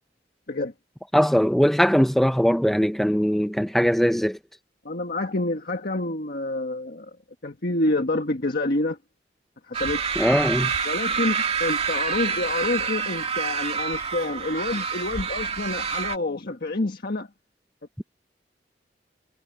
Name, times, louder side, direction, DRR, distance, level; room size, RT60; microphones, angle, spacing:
voice 1, 1.1-4.4 10.2-10.7, equal, ahead, 0.6 m, -20 dB
voice 2, 4.8-7.1 7.4-9.0 9.7-10.1 10.8-17.3, left 2 dB, 55° left, 1.5 m, -28 dB
sound 1, 9.7-16.2, right 6 dB, 35° right, 2.3 m, -27 dB
head